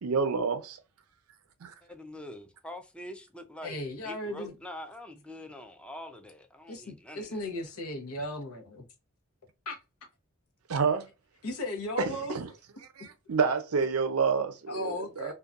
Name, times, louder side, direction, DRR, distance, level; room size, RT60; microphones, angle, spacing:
voice 1, 0.0-0.8 1.6-1.7 10.7-11.1 12.1-12.5 13.0-15.3, right 5 dB, 80° right, 0.6 m, -28 dB
voice 2, 1.8-7.4, left 1 dB, 5° left, 0.4 m, -45 dB
voice 3, 3.6-4.5 6.7-8.9 9.7-9.8 11.4-12.3 14.7-15.3, left 2 dB, 85° left, 0.8 m, -36 dB
2.7 x 2.2 x 2.3 m
head